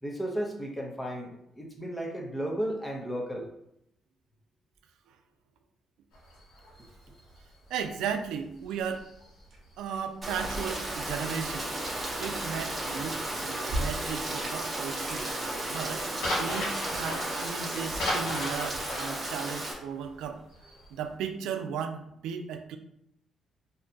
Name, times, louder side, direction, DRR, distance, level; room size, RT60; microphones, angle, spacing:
voice 1, 0.0-3.5, right 1 dB, 10° left, 0 dB, 0.7 m, -34 dB
sound 1, 6.1-10.0 10.3-13.7 14.0-14.4 14.7-21.1, left 1 dB, 85° left, 1.3 m, -37 dB
voice 2, 7.7-9.1 9.8-11.7 12.2-15.3 15.7-16.1 16.4-20.4 20.9-22.8, right 7 dB, 90° right, 7 dB, 0.3 m, -35 dB
sound 2, 8.8-18.8, right 1 dB, 55° right, 0.9 m, -43 dB
Rain, 10.2-19.7, right 1 dB, 25° right, 0.8 m, -34 dB
2.7 x 2.2 x 3.8 m, 0.77 s
cardioid pair, 90°, 0 cm